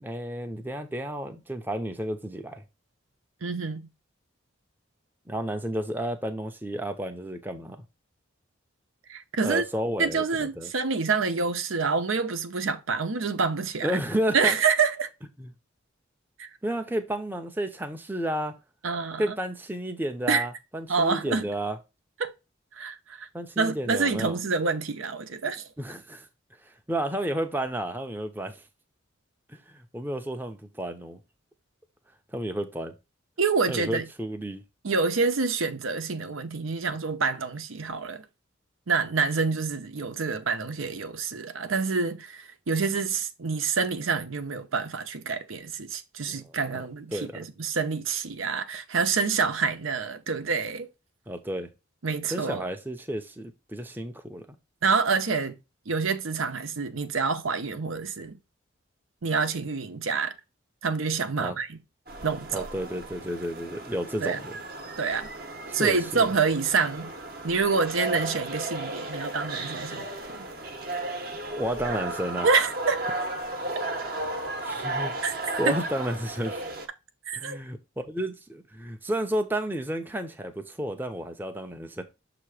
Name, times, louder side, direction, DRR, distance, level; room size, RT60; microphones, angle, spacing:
voice 1, 0.0-2.6 5.3-7.8 9.4-10.7 13.8-14.6 15.4-15.5 16.6-18.5 19.2-21.8 23.3-24.4 25.8-26.3 26.7-28.6 29.5-31.2 32.3-32.9 33.7-34.6 46.3-47.4 51.3-51.7 52.3-54.5 61.4-61.6 62.5-64.6 65.7-66.3 70.9-71.0 71.6-72.5 74.6-75.1 75.6-76.6 77.3-82.0, right 1 dB, 10° right, 0.6 m, -32 dB
voice 2, 3.4-3.9 9.1-9.6 10.0-13.9 14.3-15.1 16.4-16.5 18.8-19.3 20.3-20.5 20.9-21.5 22.2-22.3 22.8-23.3 23.6-25.7 33.4-34.1 34.8-38.2 38.9-50.9 52.0-52.6 54.8-55.6 55.9-58.4 59.2-60.3 60.8-61.8 62.2-62.7 64.2-64.4 65.0-65.3 65.7-67.1 67.4-70.4 72.4-73.0 75.2-75.3 77.3-77.6, right 4 dB, 80° right, 0.8 m, -27 dB
sound 1, 62.1-76.9, right 2 dB, 45° right, 0.9 m, -34 dB
6.6 x 2.9 x 4.8 m
head